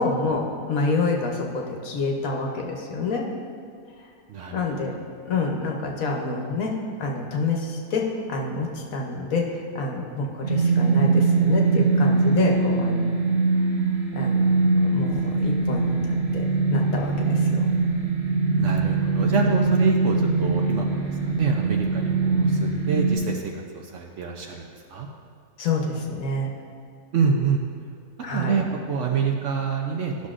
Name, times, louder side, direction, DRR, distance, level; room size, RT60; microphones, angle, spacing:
voice 1, 0.0-3.3 4.5-4.9 5.2-13.2 14.1-17.7 25.6-26.5 28.2-28.7, left 3 dB, 70° left, 0 dB, 1.3 m, -27 dB
voice 2, 4.3-4.6 18.6-23.4 23.8-24.6 24.9-25.1 27.1-27.6 28.3-30.3, right 5 dB, 65° right, 1 dB, 0.8 m, -27 dB
sound 1, 10.4-23.2, right 3 dB, 45° right, 1.6 m, -22 dB
11.5 x 6.2 x 2.5 m, 2.2 s
omnidirectional pair, 1.6 m